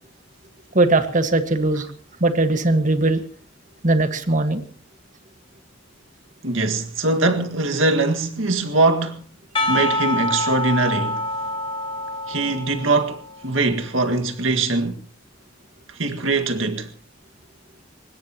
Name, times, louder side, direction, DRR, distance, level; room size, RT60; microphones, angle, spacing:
voice 1, 0.7-1.9 2.2-3.2 3.8-4.6, right 2 dB, 40° right, 1.6 m, -19 dB
voice 2, 6.4-9.2 9.7-11.3 12.3-15.0 16.0-16.9, right 2 dB, 90° right, 1.9 m, -22 dB
Percussion, 9.6-13.5, left 1 dB, 25° left, 2.3 m, -26 dB
24.0 x 20.5 x 3.0 m
head